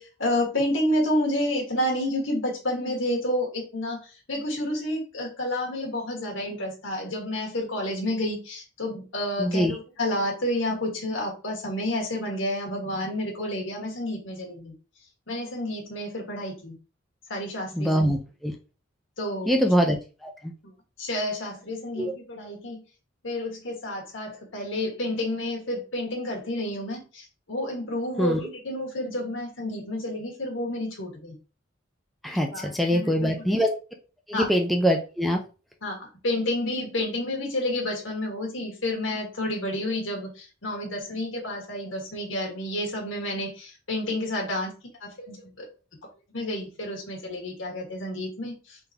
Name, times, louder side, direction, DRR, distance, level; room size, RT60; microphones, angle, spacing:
voice 1, 0.0-14.7 15.3-16.8 17.3-18.1 19.2-19.7 20.6-20.7 21.0-22.8 23.2-31.4 32.5-33.6 34.3-34.5 35.8-44.7 45.0-45.7 46.3-48.8, left 1 dB, 80° left, 0 dB, 1.5 m, -30 dB
voice 2, 9.4-9.7 17.8-18.2 18.4-18.5 19.5-20.0 20.2-20.5 22.0-22.1 28.2-28.4 32.2-33.7 34.3-35.4, equal, ahead, 1 dB, 0.4 m, -23 dB
3.8 x 3.6 x 2.8 m, 0.34 s
head